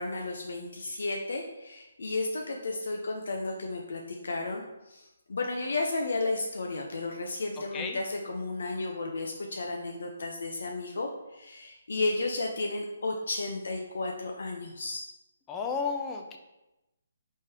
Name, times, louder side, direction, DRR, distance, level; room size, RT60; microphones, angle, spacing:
voice 1, 0.0-15.0, left 2 dB, 70° left, 1 dB, 0.5 m, -33 dB
voice 2, 15.5-16.4, left 5 dB, 15° left, 3 dB, 0.4 m, -32 dB
3.6 x 3.1 x 4.2 m, 0.98 s
figure-of-eight pair, 145°, 0 cm